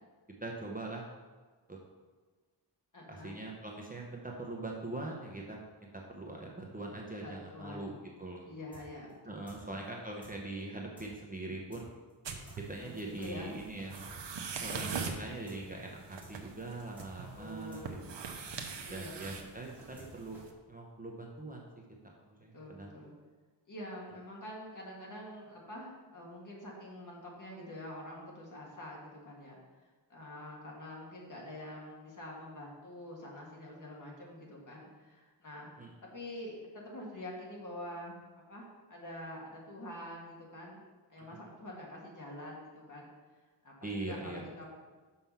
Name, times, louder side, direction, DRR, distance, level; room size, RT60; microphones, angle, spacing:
voice 1, 0.4-1.0 1.7-1.8 3.1-8.5 9.2-12.0 12.7-14.0 14.6-18.2 18.9-20.4 20.7-22.9 35.8-35.9 41.2-41.3 43.8-44.7, right 2 dB, 20° right, -2 dB, 0.8 m, -42 dB
voice 2, 2.9-3.4 7.2-7.9 8.4-9.7 12.8-13.6 14.6-14.8 17.4-18.1 18.8-19.4 22.5-23.1 23.7-29.6 30.1-35.7 36.0-38.2 38.5-40.8 41.1-43.1 43.6-44.7, left 1 dB, 45° left, -3 dB, 1.9 m, -46 dB
sound 1, 8.7-8.8 9.1-9.2 9.5-9.6 9.8-9.9 10.2-10.3 10.6-10.7 11.0-11.1 11.3-11.4 11.7-11.8 12.1-12.2 12.5-12.6 12.8-12.9 13.2-13.3 13.6-14.1 14.3-14.4 14.7-14.8 15.1-15.2 15.5-15.6 15.8-15.9 16.2-16.3 16.6-16.7 17.0-17.1 17.3-17.4 17.7-17.8 18.1-18.2 18.5-18.6 18.8-18.9 19.2-19.3 19.6-20.1 20.3-20.4, right 2 dB, 5° right, 2.5 m, -54 dB
sound 2, 12.2-20.5, right 5 dB, 70° right, 0.9 m, -43 dB
6.0 x 5.6 x 5.6 m, 1.4 s
wide cardioid pair, 160°, 45 cm